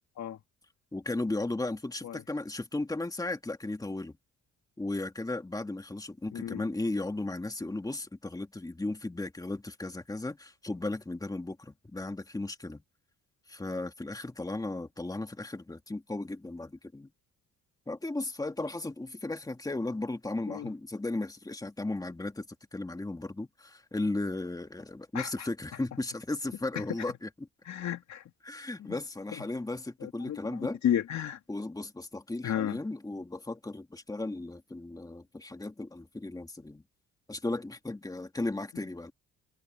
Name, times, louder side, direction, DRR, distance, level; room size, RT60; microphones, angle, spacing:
voice 1, 0.9-4.2 4.8-12.8 13.5-17.1 17.9-22.5 22.7-27.5 28.4-30.8 31.5-36.8 37.3-39.1, left 2 dB, 10° left, 2.2 m, -35 dB
voice 2, 6.3-6.6 20.5-20.7 25.1-25.3 27.7-28.2 30.0-30.4 30.8-31.4 32.4-32.8, left 10 dB, 65° left, 2.5 m, -32 dB
cardioid pair, 90°, 30 cm